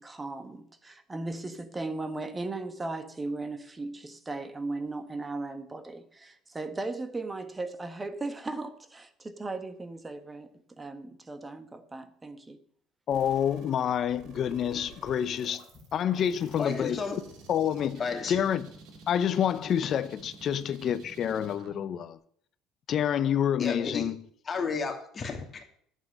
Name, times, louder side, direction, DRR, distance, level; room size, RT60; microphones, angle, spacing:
voice 1, 0.0-12.6, right 2 dB, 20° right, 1.5 m, -37 dB
voice 2, 13.1-15.6 15.9-17.0 17.5-18.0 18.3-18.7 19.1-22.2 22.9-24.2, left 9 dB, 50° left, 0.7 m, -28 dB
sound 1, 13.1-22.1, right 4 dB, 70° right, 3.0 m, -51 dB
voice 3, 16.6-17.3 18.0-18.4 19.8-19.9 23.6-24.1 24.4-25.6, left 5 dB, 30° left, 2.7 m, -32 dB
11.0 x 8.3 x 6.7 m
supercardioid pair, 95°, 0 cm